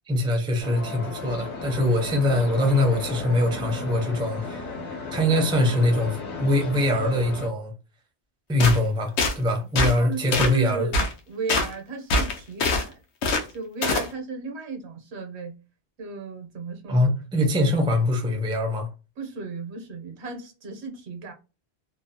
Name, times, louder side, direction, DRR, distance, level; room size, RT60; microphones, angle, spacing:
voice 1, 0.1-4.7 5.1-7.7 8.5-10.9 16.9-18.9, left 1 dB, 5° right, 0.4 m, -23 dB
sound 1, 0.6-7.5, left 3 dB, 55° left, 1.1 m, -34 dB
sound 2, 8.6-8.8 9.2-9.3 9.8-10.0 10.3-10.6 10.9-11.1 11.5-11.7 12.1-12.8 13.2-13.4 13.8-14.1, left 2 dB, 90° left, 0.9 m, -23 dB
voice 2, 9.8-13.0 13.5-15.6 16.0-17.1 19.2-21.3, right 4 dB, 85° right, 1.0 m, -35 dB
2.6 x 2.0 x 2.6 m
omnidirectional pair, 1.1 m